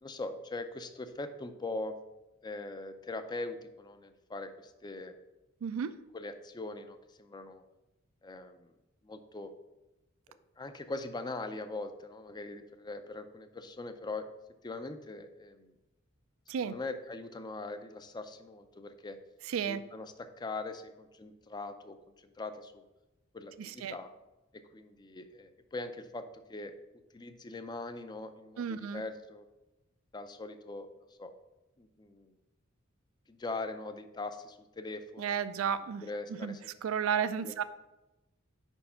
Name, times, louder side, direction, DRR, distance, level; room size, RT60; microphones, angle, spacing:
voice 1, 0.0-2.0 2.4-5.1 6.1-7.6 8.2-8.7 9.0-9.5 10.3-14.3 14.6-15.7 16.6-19.2 19.6-22.8 23.3-24.1 24.7-26.7 27.1-29.5 30.1-30.9 31.2-31.3 31.8-32.3 33.3-35.4 36.0-37.2 37.4-37.6, left 2 dB, 20° left, 9 dB, 0.4 m, -41 dB
voice 2, 5.6-5.9 16.5-16.7 19.5-19.8 23.6-23.9 28.6-29.0 35.2-36.0 36.4-36.5 36.8-37.6, right 7 dB, 85° right, 13 dB, 0.4 m, -32 dB
5.2 x 4.5 x 5.5 m, 0.98 s
head